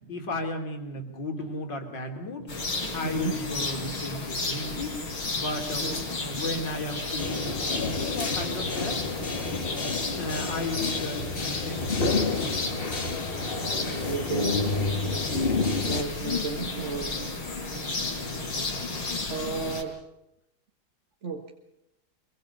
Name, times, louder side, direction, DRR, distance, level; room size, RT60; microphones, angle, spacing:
voice 1, 0.1-2.5 2.9-5.0 5.3-5.9 6.2-9.0 10.2-12.9, left 2 dB, 55° left, 4 dB, 4.0 m, -34 dB
sound 1, 2.5-19.8, left 3 dB, 85° left, 5.0 m, -33 dB
voice 2, 2.8-3.3 5.8-6.1 14.1-15.2 15.8-17.2 19.3-20.0 21.2-21.5, right 5 dB, 35° right, 3 dB, 1.8 m, -34 dB
sound 2, 7.2-16.0, left 3 dB, 30° left, 1.8 m, -30 dB
25.0 x 24.0 x 5.5 m, 0.87 s
omnidirectional pair, 2.3 m